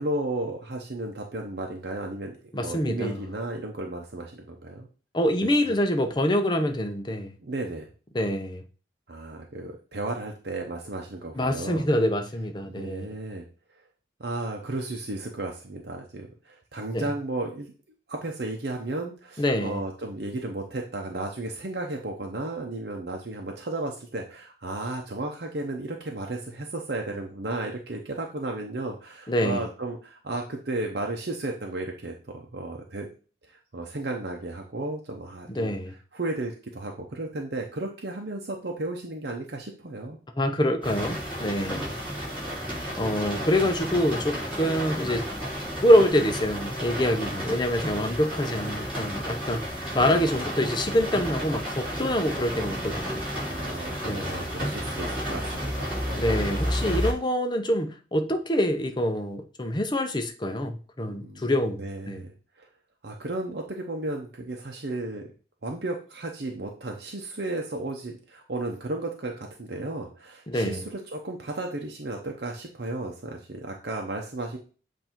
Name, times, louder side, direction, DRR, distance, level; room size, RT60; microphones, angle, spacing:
voice 1, 0.0-4.9 5.6-5.7 7.4-7.9 9.1-11.8 12.6-13.5 14.2-17.7 18.1-33.1 33.5-40.2 53.4-56.2 61.1-61.5 61.8-62.7 63.0-65.3 65.6-74.6, right 2 dB, 65° right, 0.8 m, -34 dB
voice 2, 2.5-3.2 5.1-7.3 8.1-8.6 11.4-13.1 16.9-17.0 19.4-19.8 29.3-29.7 35.5-35.9 40.4-41.9 42.9-45.2 45.8-49.7 49.9-53.2 54.0-54.4 56.2-62.2 70.5-70.8, equal, 25° left, 0.7 m, -25 dB
sound 1, 40.8-57.1, equal, 5° right, 3.5 m, -32 dB
7.8 x 2.7 x 4.4 m
head